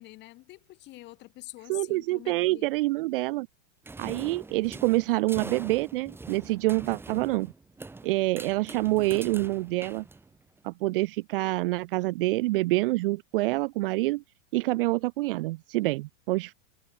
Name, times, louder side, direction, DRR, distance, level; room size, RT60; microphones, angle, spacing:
voice 1, 0.0-2.7, left 18 dB, 25° left, 1.2 m, -46 dB
voice 2, 1.7-3.5 4.0-7.5 8.0-10.0 10.6-14.2 14.5-16.5, right 20 dB, 45° right, 0.5 m, -27 dB
sound 1, 3.8-10.6, right 3 dB, 5° right, 2.2 m, -43 dB
supercardioid pair, 165°, 39 cm